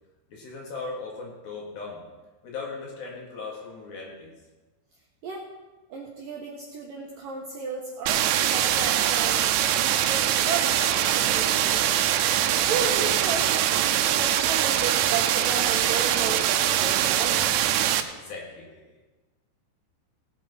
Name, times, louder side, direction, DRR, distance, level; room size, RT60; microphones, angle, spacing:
voice 1, 0.3-2.0 2.4-4.3 17.5-17.7 18.1-19.1, left 4 dB, 55° left, -2 dB, 3.4 m, -38 dB
voice 2, 5.9-12.0 12.7-17.5, right 4 dB, 70° right, -1 dB, 2.1 m, -34 dB
sound 1, 8.1-18.0, right 11 dB, 90° right, 3.2 m, -23 dB
18.5 x 9.1 x 4.3 m, 1.2 s
omnidirectional pair, 5.6 m